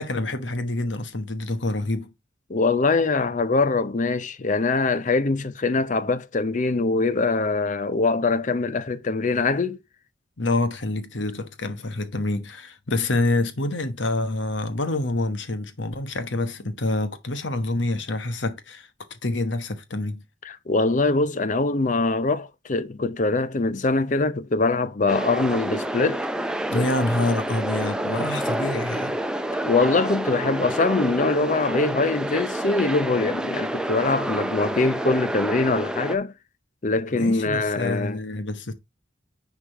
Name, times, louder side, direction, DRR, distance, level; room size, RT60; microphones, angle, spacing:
voice 1, 0.0-2.1 10.4-20.2 26.7-29.2 37.1-38.7, left 2 dB, 70° left, 1.1 m, -27 dB
voice 2, 2.5-9.8 20.5-26.3 26.7-26.9 29.6-36.3 36.8-38.2, left 3 dB, 40° left, 0.6 m, -23 dB
sound 1, 25.1-36.2, right 1 dB, 5° right, 0.5 m, -28 dB
9.9 x 3.6 x 4.5 m
head